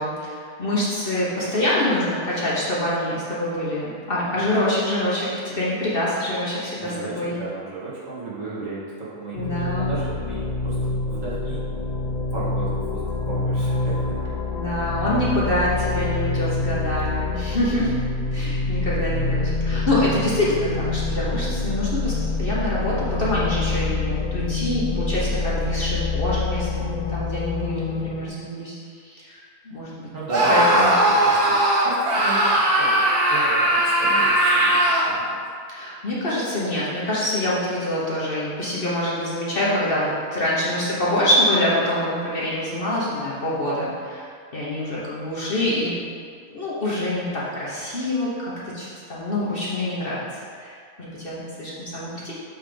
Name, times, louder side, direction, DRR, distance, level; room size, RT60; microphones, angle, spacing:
voice 1, 0.0-7.4 9.3-9.9 14.5-17.9 18.3-29.9 30.5-30.9 35.7-45.9 46.5-50.2 50.6-52.3, left 1 dB, 40° left, -7 dB, 1.3 m, -25 dB
voice 2, 6.8-10.8 11.1-11.6 12.3-14.2 30.1-35.4, right 3 dB, 60° right, -9 dB, 2.2 m, -34 dB
sound 1, 9.4-28.3, left 3 dB, 85° left, 0.3 m, -26 dB
Screaming, 30.3-35.1, right 1 dB, 75° right, 1.7 m, -19 dB
7.6 x 3.6 x 5.2 m, 2.1 s
omnidirectional pair, 1.6 m